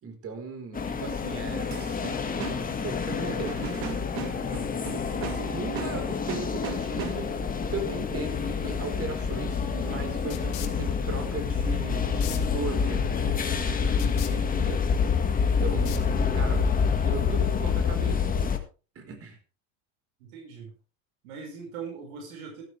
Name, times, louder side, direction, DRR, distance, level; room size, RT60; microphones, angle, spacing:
voice 1, 0.0-1.9 2.8-3.6 4.3-7.3 7.7-13.3 13.8-14.8 15.4-18.3 18.9-19.4, right 4 dB, 35° right, 6 dB, 4.6 m, -38 dB
sound 1, 0.7-18.6, left 6 dB, 20° left, 2.0 m, -27 dB
sound 2, 1.7-7.5, right 11 dB, 55° right, 2.2 m, -39 dB
sound 3, 10.3-16.6, left 13 dB, 80° left, 2.5 m, -46 dB
voice 2, 20.2-20.7 21.2-22.6, right 6 dB, 85° right, 1 dB, 5.7 m, -41 dB
13.5 x 12.5 x 3.5 m, 0.33 s
supercardioid pair, 120°, 41 cm